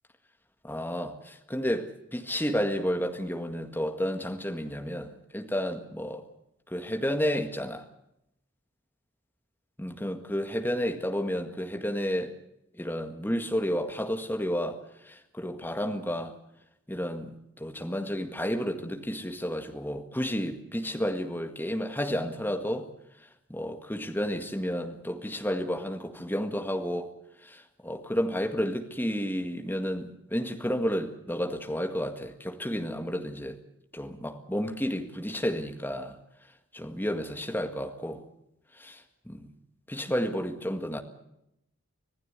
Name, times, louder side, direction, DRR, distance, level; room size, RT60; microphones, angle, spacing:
voice 1, 0.6-6.2 6.7-7.8 9.8-12.3 12.7-14.8 15.0-16.3 16.9-22.9 23.5-27.1 27.4-33.6 33.9-36.2 36.7-38.2 38.8-39.5 39.9-41.0, equal, 10° left, 1.8 m, -31 dB
26.0 x 16.5 x 8.2 m
head